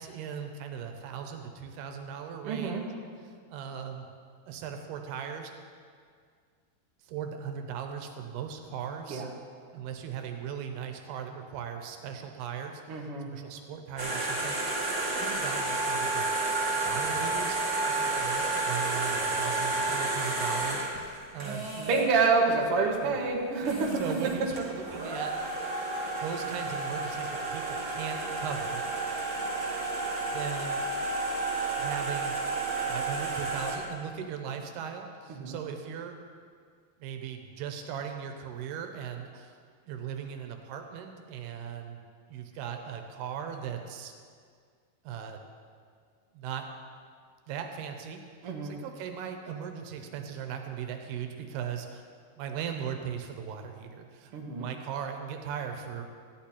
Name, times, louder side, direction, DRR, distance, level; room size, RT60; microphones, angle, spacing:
voice 1, 0.0-2.8 3.5-4.1 4.5-5.5 7.0-9.2 9.7-13.1 13.3-14.8 15.0-17.6 17.9-21.7 23.0-23.2 23.6-25.4 26.2-28.8 30.3-30.9 31.8-32.4 32.8-36.2 37.0-39.6 39.9-44.1 45.0-45.4 46.3-46.7 47.5-52.0 52.4-56.0, right 8 dB, 80° right, 5 dB, 2.9 m, -38 dB
voice 2, 2.4-2.8 9.1-9.3 12.9-13.3 21.8-24.0 35.3-35.5 48.4-48.8 54.3-54.7, right 4 dB, 65° right, -1 dB, 1.5 m, -27 dB
sound 1, 14.0-22.1 23.3-23.4 23.6-33.7, right 3 dB, 25° right, 0.4 m, -31 dB
14.0 x 10.0 x 4.3 m, 2.1 s
omnidirectional pair, 4.6 m